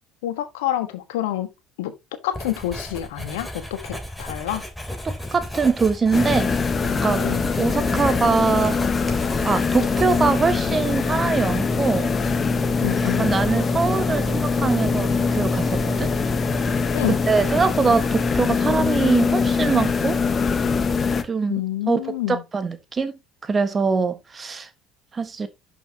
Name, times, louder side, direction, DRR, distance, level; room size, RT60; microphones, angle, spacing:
voice 1, 0.2-1.5 1.8-1.9 2.2-4.6 7.2-7.5 12.8-13.4 16.9-17.2 21.5-22.4, left 13 dB, 70° left, 1.3 m, -27 dB
Writing, 2.3-10.5, left 1 dB, 5° left, 3.4 m, -33 dB
voice 2, 5.0-6.5 7.0-7.3 7.6-8.8 9.4-12.1 13.0-16.1 17.3-20.2 21.2-21.6 21.9-22.0 22.3-24.7 25.1-25.5, right 5 dB, 30° right, 1.5 m, -23 dB
sound 1, 6.1-21.2, left 4 dB, 30° left, 1.2 m, -23 dB
11.5 x 5.8 x 2.9 m
figure-of-eight pair, 60°, 0 cm